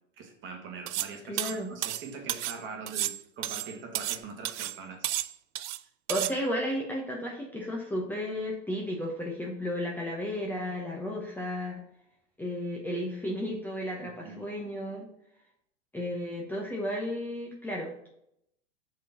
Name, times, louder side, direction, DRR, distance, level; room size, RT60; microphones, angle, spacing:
voice 1, 0.2-5.1 14.0-14.5, right 4 dB, 30° right, 3 dB, 1.5 m, -43 dB
sound 1, 0.9-1.1 1.4-2.6 2.9-4.2 4.5-4.8 5.0-5.8 6.1-6.3, right 14 dB, 70° right, 0.5 m, -32 dB
voice 2, 1.3-1.7 6.1-11.8 12.4-15.1 15.9-18.1, equal, 5° left, -2 dB, 0.9 m, -33 dB
5.1 x 4.3 x 5.6 m, 0.76 s
hypercardioid pair, 120°, 36 cm